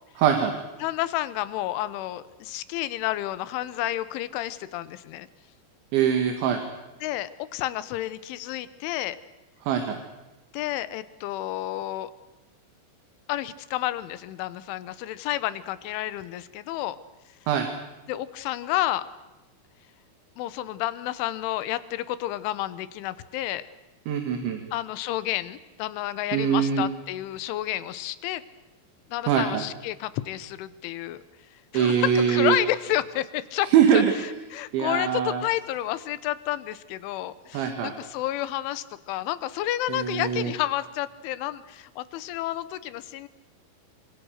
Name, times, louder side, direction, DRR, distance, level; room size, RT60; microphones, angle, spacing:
voice 1, 0.2-0.5 5.9-6.6 9.7-10.0 17.5-17.7 24.1-24.6 26.3-26.8 29.3-29.6 31.7-32.6 33.7-34.1 34.7-35.4 37.5-37.9 39.9-40.5, right 8 dB, 75° right, 5 dB, 4.2 m, -22 dB
voice 2, 0.8-5.3 7.0-9.2 10.5-12.1 13.3-17.0 18.1-19.0 20.4-23.7 24.7-28.4 29.1-31.2 31.7-43.3, left 14 dB, 90° left, 15 dB, 3.5 m, -30 dB
27.5 x 25.5 x 6.6 m, 1.1 s
omnidirectional pair, 5.4 m